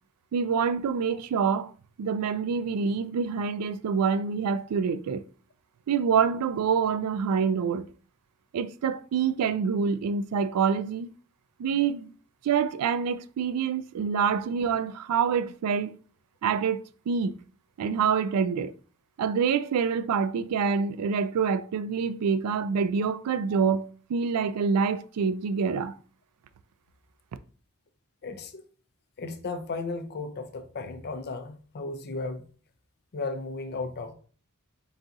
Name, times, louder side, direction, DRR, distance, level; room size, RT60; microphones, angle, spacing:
voice 1, 0.3-1.7 2.0-5.2 5.9-7.8 8.5-11.1 11.6-12.1 12.4-16.0 16.4-17.4 17.8-18.7 19.2-26.0, right 6 dB, 90° right, 0.3 m, -26 dB
voice 2, 28.2-28.6 29.2-32.4 33.1-34.1, left 3 dB, 45° left, 0.5 m, -35 dB
4.0 x 3.9 x 2.4 m
head